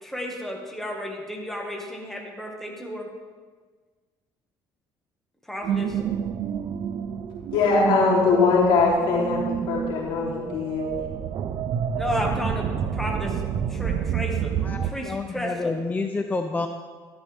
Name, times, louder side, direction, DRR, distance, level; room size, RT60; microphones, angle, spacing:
voice 1, 0.0-3.1 5.5-6.0 11.9-13.4 13.7-14.6 14.8-15.7, equal, 5° left, 0 dB, 1.9 m, -32 dB
sound 1, 5.6-14.9, right 8 dB, 60° right, 0.7 m, -29 dB
voice 2, 7.5-10.9, left 4 dB, 75° left, -4 dB, 3.4 m, -21 dB
voice 3, 14.6-16.7, left 3 dB, 20° left, 5 dB, 0.7 m, -29 dB
13.0 x 11.5 x 3.6 m, 1.5 s
cardioid pair, 105°, 9 cm